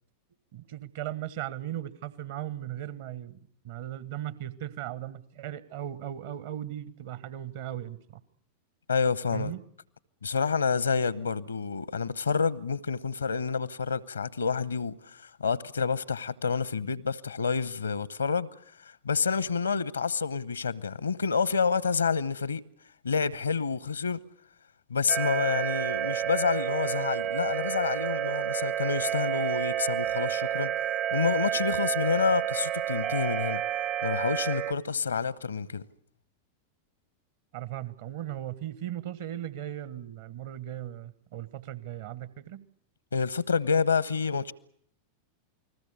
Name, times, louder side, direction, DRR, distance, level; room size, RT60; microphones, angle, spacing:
voice 1, 0.5-3.4 3.6-8.2 9.3-9.6 37.5-42.6, right 12 dB, 55° right, 1.4 m, -37 dB
voice 2, 8.9-9.5 10.2-18.5 18.8-22.6 23.0-24.2 24.9-33.6 34.0-35.8 43.1-44.5, left 5 dB, 75° left, 0.9 m, -28 dB
sound 1, 25.1-34.7, right 11 dB, 35° right, 0.9 m, -30 dB
29.0 x 20.5 x 6.9 m
figure-of-eight pair, 90°, 0 cm